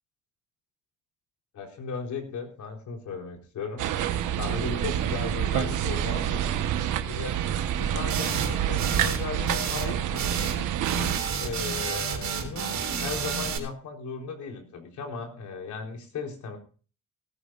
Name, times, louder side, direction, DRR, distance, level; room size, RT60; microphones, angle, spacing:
voice 1, 1.5-3.8 4.4-6.4 7.1-7.4 7.8-10.3 11.4-16.6, left 5 dB, 70° left, 2 dB, 4.0 m, -36 dB
sound 1, 3.8-11.2, right 10 dB, 85° right, 1.3 m, -28 dB
sound 2, 8.1-8.5 8.8-9.2 9.5-9.9 10.1-10.6 10.8-13.6, right 6 dB, 65° right, 3.9 m, -30 dB
19.0 x 14.0 x 2.5 m, 0.37 s
cardioid pair, 90°, 30 cm